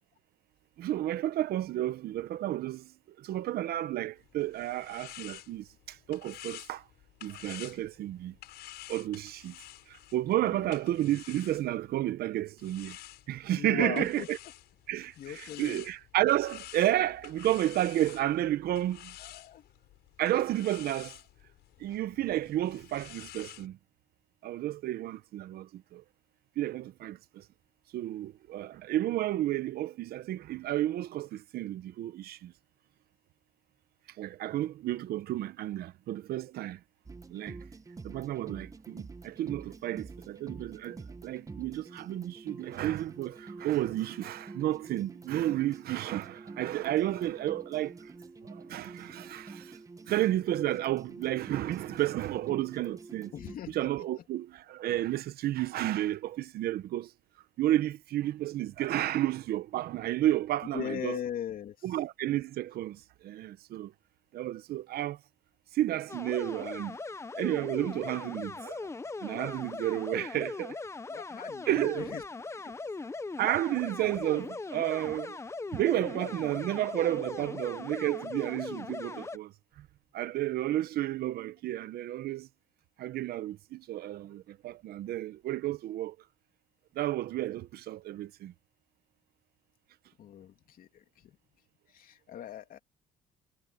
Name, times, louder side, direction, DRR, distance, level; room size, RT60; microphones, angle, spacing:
voice 1, 0.8-6.8 7.2-8.3 8.9-9.6 9.9-13.0 13.3-14.4 14.9-19.1 20.2-21.2 21.8-23.8 24.4-26.0 26.6-27.4 27.9-32.5 34.2-36.8 37.3-37.6 38.0-48.1 48.5-49.8 50.1-53.3 53.7-57.1 57.6-61.2 61.8-63.9 64.3-65.2 65.7-67.0 67.3-68.9 69.2-70.8 71.7-72.1 73.4-75.4 75.7-79.9 80.1-82.5 83.0-86.2 86.9-88.5, right 14 dB, 65° right, 0.9 m, -32 dB
sound 1, 4.2-12.0 12.6-23.7, left 14 dB, 75° left, 7.2 m, -50 dB
voice 2, 10.4-10.7 13.5-14.3 15.2-15.8 19.2-19.6 53.3-53.7 60.7-61.7 71.1-72.2 90.2-91.3 91.9-92.8, left 10 dB, 55° left, 3.1 m, -39 dB
sound 2, 37.1-53.6, right 3 dB, 20° right, 1.1 m, -47 dB
sound 3, 66.1-79.4, left 3 dB, 15° left, 1.0 m, -40 dB
cardioid pair, 110°, 17 cm